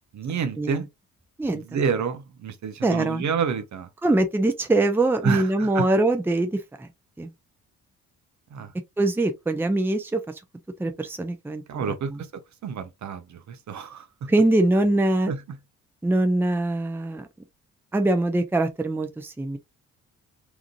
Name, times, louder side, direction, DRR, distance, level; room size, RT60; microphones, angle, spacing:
voice 1, 0.1-0.9 1.5-3.9 5.2-5.9 8.5-8.7 11.7-14.3 15.3-15.6, right 6 dB, 45° right, 0.9 m, -29 dB
voice 2, 2.8-3.2 4.0-6.9 7.2-7.3 9.0-10.3 10.8-11.9 14.3-15.3 16.0-17.3 17.9-19.6, right 2 dB, 5° right, 0.7 m, -23 dB
3.6 x 2.9 x 2.3 m
figure-of-eight pair, 40°, 41 cm